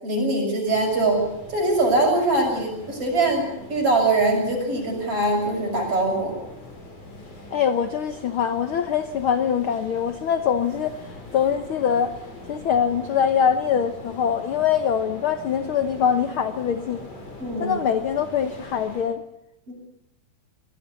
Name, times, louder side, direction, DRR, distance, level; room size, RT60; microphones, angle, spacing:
voice 1, 0.0-1.2 1.5-6.3 17.4-17.7 19.7-19.8, right 2 dB, 50° right, 2 dB, 7.8 m, -22 dB
sound 1, 0.7-19.0, left 2 dB, 85° left, 8.1 m, -42 dB
voice 2, 7.5-11.0 11.3-12.2 12.5-17.0 17.6-19.2, left 7 dB, 65° left, 9 dB, 1.4 m, -23 dB
24.5 x 19.0 x 7.0 m, 0.86 s
omnidirectional pair, 3.5 m